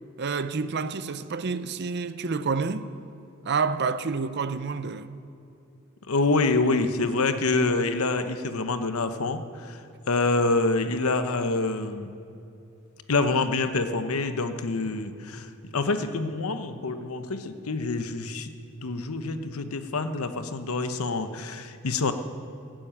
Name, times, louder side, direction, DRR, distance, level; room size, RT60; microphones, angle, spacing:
voice 1, 0.2-2.9 3.4-5.1, right 4 dB, 50° right, 0.6 m, -28 dB
voice 2, 6.1-9.8 10.1-12.1 13.1-18.5 18.8-22.1, left 3 dB, 85° left, 0.9 m, -26 dB
16.5 x 7.7 x 8.8 m
head